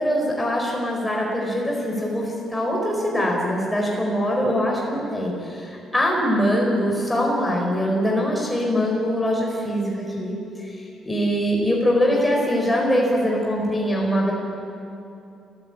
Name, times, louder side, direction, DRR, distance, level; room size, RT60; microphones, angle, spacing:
voice 1, 0.0-14.3, equal, 10° left, -2 dB, 4.8 m, -23 dB
30.0 x 14.5 x 8.8 m, 2.7 s
cardioid pair, 95°, 0 cm